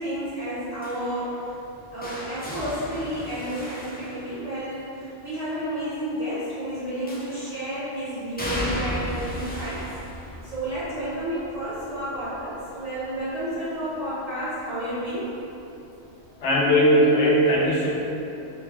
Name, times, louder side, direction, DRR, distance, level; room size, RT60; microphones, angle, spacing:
voice 1, 0.0-1.3 1.9-9.8 10.4-15.3, right 1 dB, 40° right, -12 dB, 0.7 m, -31 dB
sound 1, 0.8-4.9 7.1-7.7 8.4-14.2 14.5-14.9 16.2-16.3, equal, 15° left, 0.3 m, -36 dB
voice 2, 16.4-17.9, equal, 70° left, -5 dB, 1.1 m, -19 dB
3.9 x 3.1 x 3.5 m, 2.9 s
omnidirectional pair, 1.2 m